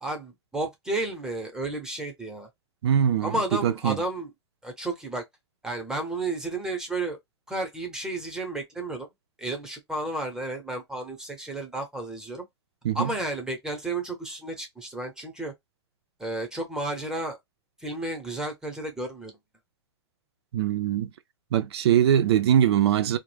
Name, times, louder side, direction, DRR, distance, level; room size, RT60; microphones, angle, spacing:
voice 1, 0.0-2.5 3.2-4.3 4.6-5.2 5.6-7.2 7.5-9.1 9.4-12.4 12.9-15.5 16.2-17.4 17.8-19.3, right 2 dB, 5° right, 0.8 m, -32 dB
voice 2, 2.8-3.4 3.6-4.0 12.8-13.1 20.5-21.1 21.5-23.2, right 10 dB, 65° right, 0.5 m, -22 dB
2.3 x 2.1 x 3.2 m
hypercardioid pair, 130°, 14 cm